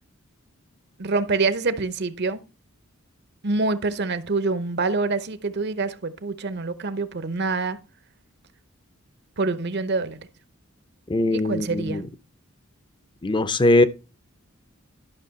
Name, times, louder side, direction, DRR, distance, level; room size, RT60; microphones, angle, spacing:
voice 1, 1.0-2.4 3.4-7.8 9.4-10.2 11.3-12.0, right 3 dB, 50° right, 0.8 m, -26 dB
voice 2, 11.1-12.0 13.2-13.8, left 2 dB, 20° left, 0.6 m, -20 dB
11.5 x 6.0 x 4.0 m
head